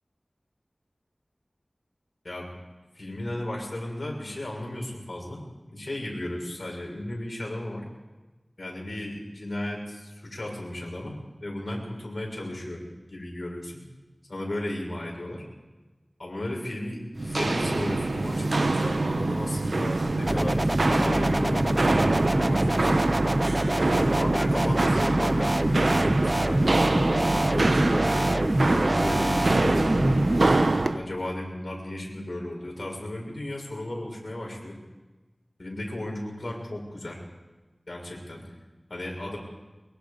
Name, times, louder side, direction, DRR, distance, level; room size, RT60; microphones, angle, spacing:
voice 1, 2.9-7.9 8.6-12.8 13.1-13.8 14.3-15.4 16.2-22.9 23.9-28.1 28.6-30.3 30.9-34.8 35.6-37.2 37.9-38.4 38.9-39.4, left 1 dB, 65° left, -1 dB, 6.4 m, -34 dB
Walk footsteps, 17.2-31.0, right 2 dB, 75° right, 0.9 m, -25 dB
sound 1, 20.3-30.6, right 1 dB, 25° right, 0.6 m, -26 dB
23.5 x 22.0 x 5.1 m, 1.2 s
wide cardioid pair, 50°, 0 cm